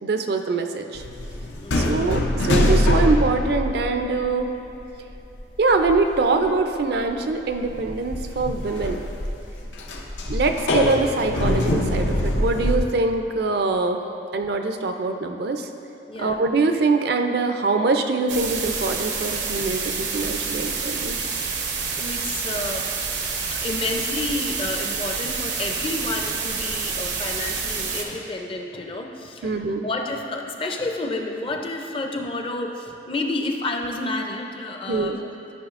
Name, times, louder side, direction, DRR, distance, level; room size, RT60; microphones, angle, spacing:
voice 1, 0.0-1.0 1.7-4.5 5.6-9.0 10.3-14.0 14.3-15.7 16.2-21.2 29.4-29.9 34.9-35.2, right 3 dB, 60° right, 6 dB, 0.4 m, -23 dB
sound 1, 1.0-4.7 5.1-6.1 6.4-6.5 7.0-12.8, left 1 dB, 90° left, 0.7 m, -24 dB
voice 2, 1.6-2.1 9.6-10.1 16.1-16.4 21.5-22.9 23.2-35.3, left 2 dB, 30° left, 3 dB, 0.5 m, -30 dB
sound 2, 18.3-28.0, right 5 dB, 85° right, 0.8 m, -28 dB
12.0 x 5.6 x 2.5 m, 3.0 s
head